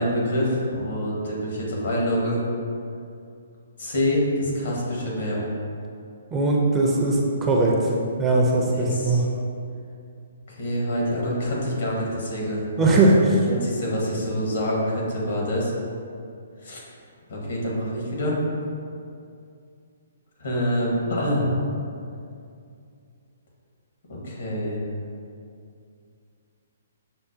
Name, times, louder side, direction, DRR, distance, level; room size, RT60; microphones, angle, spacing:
voice 1, 0.0-2.4 3.8-5.4 8.6-9.2 10.6-13.2 13.5-15.7 16.6-16.8 17.3-18.4 20.4-21.5 24.1-24.8, equal, 70° left, -4 dB, 1.2 m, -26 dB
voice 2, 6.3-7.8 8.2-9.3 12.8-13.3, right 2 dB, 20° right, -2 dB, 0.4 m, -20 dB
5.8 x 2.1 x 2.6 m, 2.4 s
hypercardioid pair, 140°, 0 cm